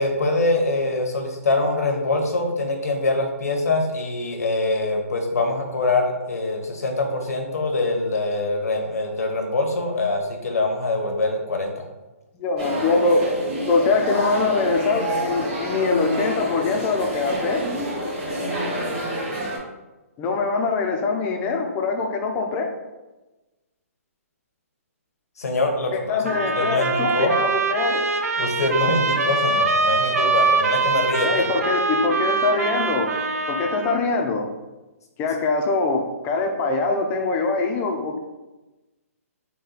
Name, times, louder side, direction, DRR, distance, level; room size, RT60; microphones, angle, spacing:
voice 1, 0.0-11.7 25.4-25.9 26.6-27.3 28.4-31.5, left 2 dB, 85° left, 3 dB, 0.9 m, -24 dB
voice 2, 12.3-13.2 13.7-17.6 20.2-22.7 25.9-28.0 31.2-33.2 33.5-34.5 35.2-38.2, left 4 dB, 20° left, 3 dB, 0.5 m, -23 dB
sound 1, 12.6-19.6, equal, 30° right, 1.4 m, -28 dB
sound 2, 26.3-34.0, right 3 dB, 80° right, 0.5 m, -23 dB
4.0 x 2.2 x 4.0 m, 1.1 s
hypercardioid pair, 145°, 8 cm